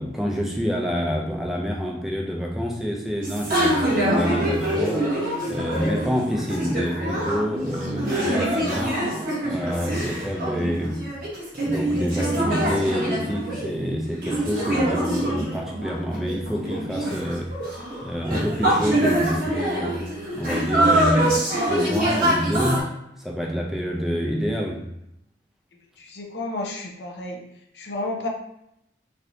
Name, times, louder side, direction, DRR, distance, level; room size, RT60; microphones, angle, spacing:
voice 1, 0.0-5.1 5.5-9.0 9.4-11.1 11.6-20.0 20.3-24.8, equal, ahead, -1 dB, 0.4 m, -27 dB
sound 1, 3.2-22.8, right 1 dB, 50° right, 1.0 m, -25 dB
voice 2, 26.0-27.4 27.7-28.3, left 2 dB, 75° left, 1 dB, 0.6 m, -31 dB
3.2 x 2.7 x 2.7 m, 0.80 s
head